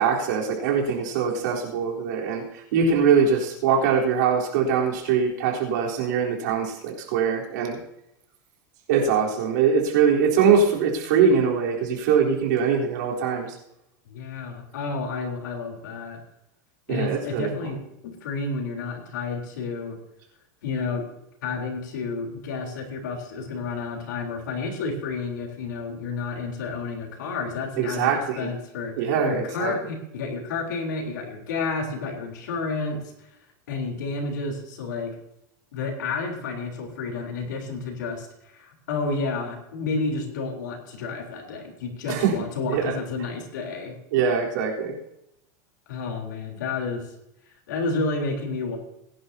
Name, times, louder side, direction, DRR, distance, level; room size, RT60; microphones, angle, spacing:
voice 1, 0.0-2.4 2.7-7.8 8.9-13.5 16.9-17.5 27.8-28.5 29.0-29.7 42.1-42.3 42.7-42.9 44.1-44.9, right 6 dB, 75° right, -2 dB, 3.8 m, -22 dB
voice 2, 14.1-16.2 16.9-20.0 20.6-21.1 21.4-28.9 29.2-33.0 33.7-35.1 35.7-38.3 38.5-44.0 45.9-47.0 47.7-48.8, left 4 dB, 90° left, 2 dB, 3.7 m, -30 dB
21.0 x 11.0 x 2.8 m, 0.82 s
supercardioid pair, 135°, 10 cm